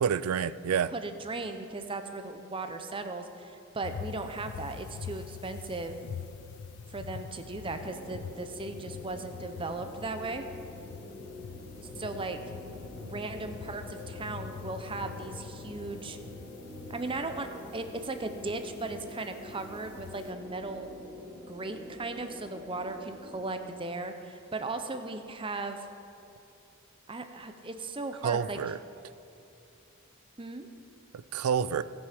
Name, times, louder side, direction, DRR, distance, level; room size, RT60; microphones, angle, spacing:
voice 1, 0.0-0.9 28.2-28.8 31.1-31.8, right 7 dB, 85° right, 16 dB, 0.4 m, -28 dB
voice 2, 0.9-6.0 6.9-10.5 12.0-12.4 13.0-16.2 16.9-17.5 17.7-20.9 21.5-25.9 27.1-28.6 30.4-30.7, right 3 dB, 25° right, 7 dB, 0.7 m, -37 dB
sound 1, 3.8-20.3, left 7 dB, 75° left, 0.3 m, -45 dB
sound 2, 7.6-23.5, left 1 dB, 5° right, 1.6 m, -46 dB
17.5 x 6.4 x 5.1 m, 2.7 s
head